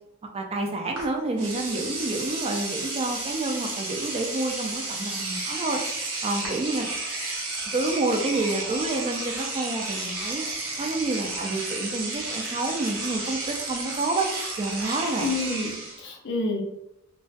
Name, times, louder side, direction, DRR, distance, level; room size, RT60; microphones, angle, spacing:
voice 1, 0.3-5.8 6.2-6.9 7.7-10.4 10.8-14.3 14.6-15.3, right 2 dB, 30° right, 2 dB, 0.3 m, -28 dB
Engine / Domestic sounds home sounds, 1.0-1.1 1.4-16.0, right 2 dB, 75° right, 0.7 m, -32 dB
voice 2, 15.2-16.6, left 2 dB, 55° left, 0 dB, 0.5 m, -29 dB
2.3 x 2.3 x 2.5 m, 0.87 s
head